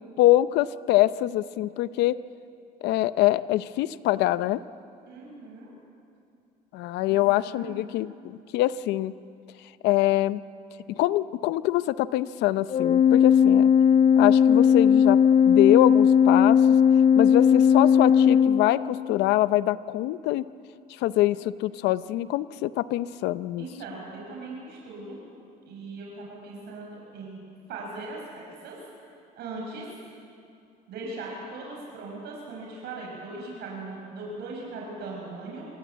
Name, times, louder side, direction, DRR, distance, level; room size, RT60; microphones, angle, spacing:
voice 1, 0.2-2.2 2.8-4.6 6.7-9.1 9.8-10.4 10.9-13.7 14.2-15.2 15.5-16.6 17.2-20.5 21.0-23.7, left 15 dB, 90° left, 15 dB, 0.6 m, -24 dB
voice 2, 5.1-5.7 7.1-7.9 23.6-25.2 25.7-27.4 27.7-28.8 29.4-29.9 30.9-35.7, right 3 dB, 75° right, -2 dB, 5.7 m, -39 dB
Organ, 12.7-19.2, left 7 dB, 50° left, 0.9 m, -18 dB
25.5 x 18.0 x 8.2 m, 2.5 s
cardioid pair, 110°, 17 cm